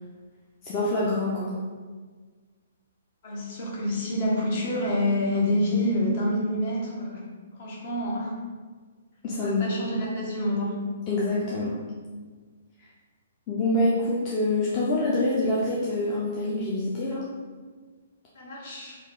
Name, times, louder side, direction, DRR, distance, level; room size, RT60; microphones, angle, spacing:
voice 1, 0.6-1.6 9.2-9.6 11.1-11.8 13.5-17.2, left 2 dB, 25° left, -7 dB, 0.5 m, -26 dB
voice 2, 3.2-8.4 9.3-10.8 18.3-19.0, left 1 dB, 45° left, -3 dB, 1.0 m, -27 dB
3.0 x 2.4 x 3.7 m, 1.5 s
hypercardioid pair, 150°, 0 cm